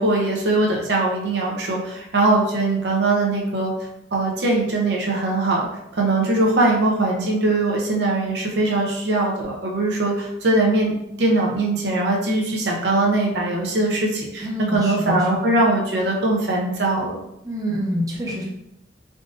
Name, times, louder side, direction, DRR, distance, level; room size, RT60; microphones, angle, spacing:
voice 1, 0.0-3.7 4.1-5.7 5.9-10.9 11.2-17.2, right 2 dB, 65° right, -2 dB, 0.6 m, -21 dB
voice 2, 14.4-15.6 17.4-18.4, equal, 20° right, -4 dB, 0.7 m, -26 dB
3.6 x 2.5 x 2.5 m, 0.83 s
head